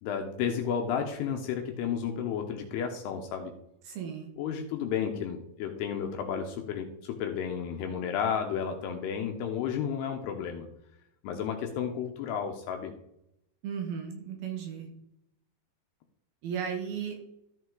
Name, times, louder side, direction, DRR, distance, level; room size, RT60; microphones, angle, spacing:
voice 1, 0.0-3.5 4.4-10.7 11.2-12.9, left 7 dB, 75° left, 4 dB, 2.6 m, -32 dB
voice 2, 3.8-4.3 13.6-14.9 16.4-17.2, right 7 dB, 70° right, 3 dB, 2.5 m, -35 dB
13.5 x 5.7 x 3.8 m, 0.79 s
omnidirectional pair, 5.2 m